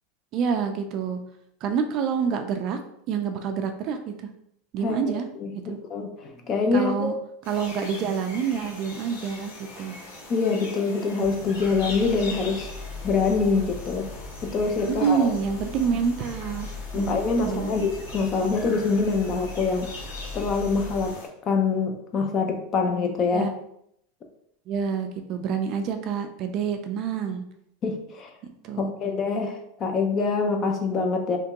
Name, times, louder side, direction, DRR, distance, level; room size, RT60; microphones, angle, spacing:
voice 1, 0.3-1.2 1.6-2.8 3.1-4.1 4.7-5.3 5.6-5.8 6.7-7.1 7.5-9.9 14.9-16.7 16.9-17.1 17.4-17.7 23.3-23.5 24.7-27.4 28.6-28.9, right 6 dB, 35° right, 6 dB, 0.3 m, -27 dB
voice 2, 4.8-7.2 10.3-12.7 13.0-14.1 14.4-15.3 16.9-19.9 20.3-21.1 21.5-23.5 27.8-28.3 28.8-31.4, left 4 dB, 25° left, 4 dB, 0.4 m, -25 dB
sound 1, 7.4-21.3, left 2 dB, 85° left, 1.3 m, -42 dB
sound 2, 11.2-21.1, left 4 dB, ahead, 1.2 m, -39 dB
3.4 x 2.9 x 2.9 m, 0.74 s
supercardioid pair, 160°, 0 cm